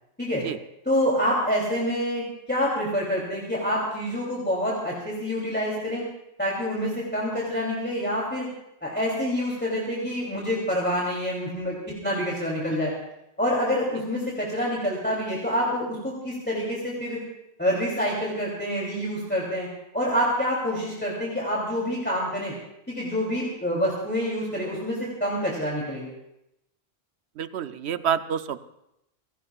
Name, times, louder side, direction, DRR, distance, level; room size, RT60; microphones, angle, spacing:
voice 1, 0.8-6.0 6.4-8.5 8.8-12.9 13.4-17.2 17.6-19.7 19.9-22.5 22.9-26.1, equal, 10° left, -5 dB, 3.0 m, -27 dB
voice 2, 27.4-28.6, right 8 dB, 80° right, 11 dB, 1.0 m, -28 dB
26.5 x 17.0 x 2.4 m, 0.85 s
omnidirectional pair, 1.1 m